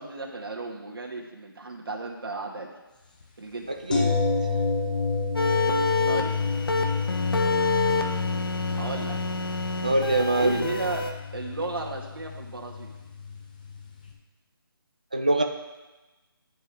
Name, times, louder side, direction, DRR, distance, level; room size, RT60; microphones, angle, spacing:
voice 1, 0.0-2.7 3.4-3.7 6.0-6.4 8.7-9.2 10.4-12.9, right 3 dB, 65° right, -1 dB, 2.1 m, -34 dB
sound 1, 3.9-13.8 14.1-14.2, left 4 dB, 20° left, 0.8 m, -29 dB
voice 2, 3.9-4.3 9.8-10.6 15.1-15.4, right 2 dB, 20° right, 4 dB, 0.3 m, -23 dB
sound 2, 5.4-11.1, left 3 dB, 70° left, 1.3 m, -28 dB
11.0 x 5.8 x 6.2 m, 1.1 s
figure-of-eight pair, 175°, 12 cm